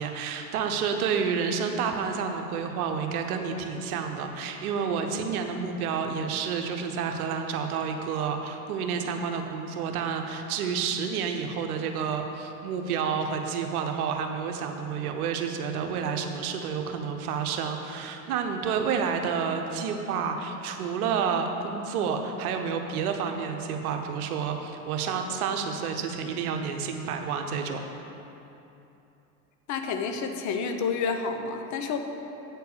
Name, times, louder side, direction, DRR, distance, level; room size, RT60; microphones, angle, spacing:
voice 1, 0.0-27.8, right 6 dB, 80° right, 5 dB, 1.0 m, -29 dB
voice 2, 29.7-32.0, left 5 dB, 40° left, 6 dB, 0.8 m, -29 dB
9.0 x 4.6 x 6.9 m, 2.9 s
supercardioid pair, 110°, 44 cm